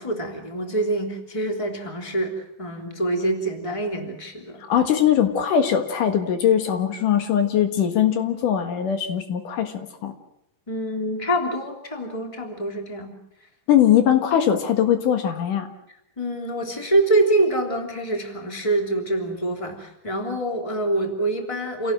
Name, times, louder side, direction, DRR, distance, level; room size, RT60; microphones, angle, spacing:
voice 1, 0.0-4.6 10.7-13.1 16.2-21.9, right 1 dB, 10° left, 3 dB, 2.8 m, -25 dB
voice 2, 4.7-10.1 13.7-15.7, left 9 dB, 75° left, 7 dB, 3.1 m, -21 dB
27.5 x 17.5 x 7.6 m, 0.80 s
omnidirectional pair, 3.8 m